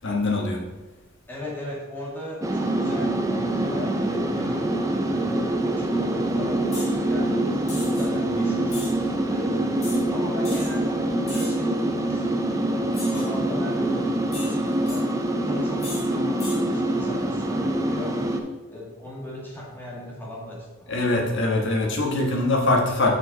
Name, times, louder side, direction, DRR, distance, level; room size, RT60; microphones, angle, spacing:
voice 1, 0.0-0.6 20.9-23.1, left 2 dB, 60° left, -1 dB, 1.5 m, -23 dB
voice 2, 1.3-7.5 7.8-9.0 9.3-15.1 15.5-18.3 18.7-20.9, left 1 dB, 10° left, -5 dB, 2.0 m, -38 dB
sound 1, 2.4-18.4, right 1 dB, 15° right, 0.5 m, -25 dB
sound 2, 6.7-6.9 7.7-8.1 8.7-8.9 9.8-10.0 10.4-10.7 11.3-11.6 12.9-13.3 14.3-15.0 15.8-16.1 16.4-16.6, left 2 dB, 30° left, 2.4 m, -37 dB
6.7 x 6.0 x 4.0 m, 1.1 s
head